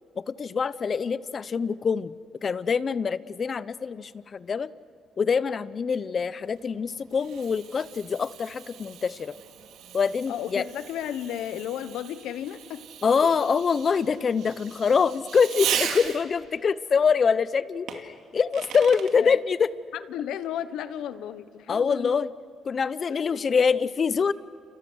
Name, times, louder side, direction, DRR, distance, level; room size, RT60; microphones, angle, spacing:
voice 1, 0.2-2.1 2.4-4.7 5.2-9.4 9.9-10.7 13.0-19.7 21.7-22.3 22.6-24.3, left 6 dB, 45° left, 17 dB, 0.8 m, -25 dB
Fireworks, 6.5-16.5 17.9-19.1, right 9 dB, 85° right, 2.4 m, -37 dB
voice 2, 10.3-12.8 19.2-19.4 19.9-22.1 23.1-23.4, left 10 dB, 85° left, 13 dB, 1.2 m, -34 dB
29.5 x 29.5 x 6.4 m, 2.6 s
cardioid pair, 90°, 0 cm